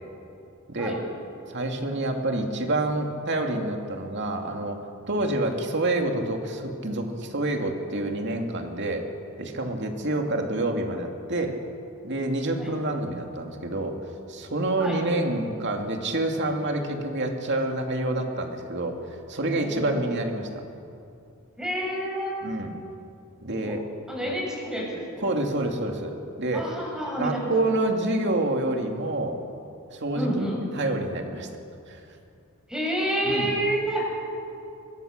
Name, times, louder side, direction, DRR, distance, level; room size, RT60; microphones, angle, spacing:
voice 1, 0.7-1.0 1.5-4.8 5.1-9.1 9.4-11.6 12.0-14.0 14.3-20.5 22.4-22.8 23.4-23.8 24.2-24.3 25.2-26.7 27.2-29.4 29.9-30.5 30.7-31.5 31.9-32.0 33.2-33.5, right 2 dB, 55° right, 3 dB, 2.6 m, -27 dB
voice 2, 19.6-20.1 21.6-22.3 23.6-23.7 24.1-25.3 26.5-27.4 30.1-30.6 32.7-34.0, right 1 dB, 5° right, -3 dB, 7.1 m, -29 dB
25.0 x 22.5 x 6.7 m, 2.6 s
head